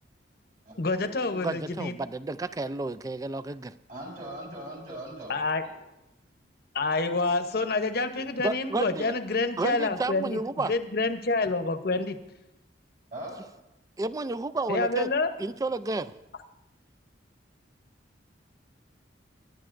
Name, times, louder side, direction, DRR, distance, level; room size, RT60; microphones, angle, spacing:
voice 1, 0.8-2.0 5.3-5.6 6.7-10.4 10.7-12.2 14.7-15.3, left 3 dB, 60° left, 8 dB, 0.9 m, -27 dB
voice 2, 1.3-3.7 8.4-9.1 9.6-10.7 14.0-15.1 15.4-16.1, right 3 dB, 20° right, 14 dB, 0.3 m, -31 dB
voice 3, 3.9-5.3 5.6-5.7 13.1-13.3, right 1 dB, 50° right, -2 dB, 4.3 m, -39 dB
23.0 x 10.5 x 2.6 m, 0.90 s
head